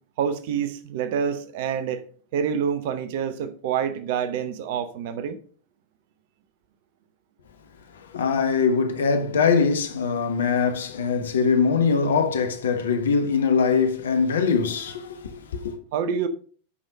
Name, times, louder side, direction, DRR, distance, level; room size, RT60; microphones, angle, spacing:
voice 1, 0.2-2.0 2.3-5.4 15.9-16.3, right 7 dB, 50° right, 0.8 m, -27 dB
voice 2, 8.1-15.7, left 5 dB, 65° left, 1.1 m, -22 dB
8.6 x 5.5 x 5.1 m
figure-of-eight pair, 90°, 0 cm